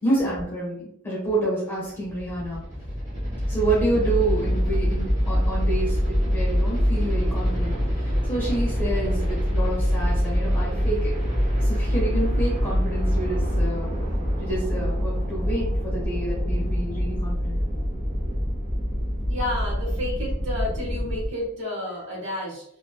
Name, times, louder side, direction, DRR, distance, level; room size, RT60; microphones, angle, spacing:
voice 1, 0.0-2.6 3.4-11.1 11.6-13.9 14.4-17.6, right 2 dB, 10° left, -8 dB, 1.2 m, -28 dB
sound 1, 1.9-21.3, equal, 30° right, 1.2 m, -25 dB
voice 2, 19.3-22.6, left 1 dB, 60° right, -5 dB, 1.4 m, -31 dB
3.2 x 2.9 x 2.3 m, 0.72 s
head